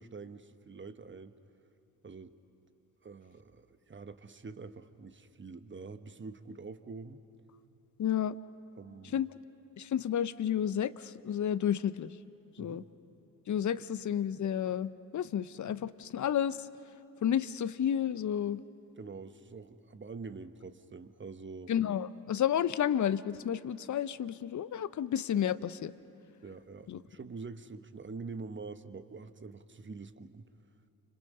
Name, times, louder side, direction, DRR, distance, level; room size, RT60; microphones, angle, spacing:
voice 1, 0.0-1.3 2.0-2.3 3.0-7.2 8.7-9.2 12.6-12.9 19.0-21.7 26.4-30.4, right 4 dB, 25° right, 11 dB, 1.2 m, -45 dB
voice 2, 8.0-8.4 9.1-9.3 9.8-12.1 12.6-12.8 13.5-16.7 17.2-18.6 21.7-25.9 26.9-27.0, left 9 dB, 40° left, 16 dB, 0.8 m, -31 dB
30.0 x 25.0 x 5.5 m, 2.9 s
hypercardioid pair, 45°, 44 cm